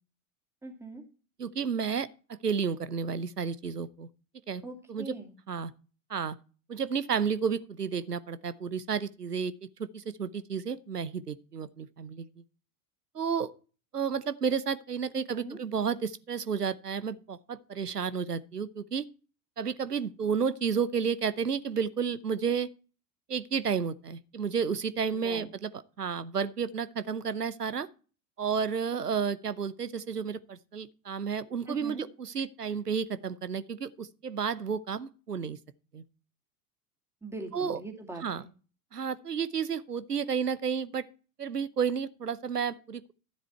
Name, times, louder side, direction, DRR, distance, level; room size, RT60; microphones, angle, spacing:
voice 1, 0.6-1.0 4.6-5.3 15.3-15.6 25.1-25.5 31.7-32.1 37.2-38.5, right 2 dB, 5° right, 2.5 m, -41 dB
voice 2, 1.4-2.1 2.4-4.1 4.5-4.6 4.9-5.1 5.5-5.7 6.1-6.4 6.7-9.5 9.8-12.3 13.1-13.5 13.9-19.1 19.6-22.7 23.3-27.9 28.4-35.6 35.9-36.0 37.5-37.8 38.2-38.4 38.9-41.0 41.4-43.1, right 6 dB, 90° right, 0.8 m, -31 dB
12.5 x 7.6 x 4.4 m
figure-of-eight pair, 90°, 45 cm